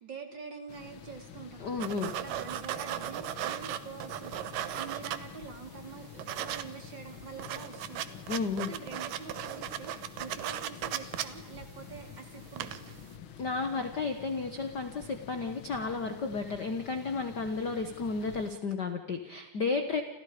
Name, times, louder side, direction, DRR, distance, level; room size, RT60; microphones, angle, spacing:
voice 1, 0.0-1.8 2.2-13.0 19.7-20.0, right 6 dB, 35° right, 4 dB, 3.1 m, -46 dB
sound 1, 0.7-18.5, left 7 dB, 50° left, 1.7 m, -49 dB
voice 2, 1.6-2.1 8.3-8.7 13.4-20.0, left 4 dB, 70° left, 7 dB, 1.0 m, -33 dB
sound 2, 1.8-5.6 5.9-6.6 7.0-7.1 7.3-12.2 12.5-13.0, right 12 dB, 75° right, 2.6 m, -37 dB
29.5 x 28.0 x 5.1 m, 0.98 s
omnidirectional pair, 4.0 m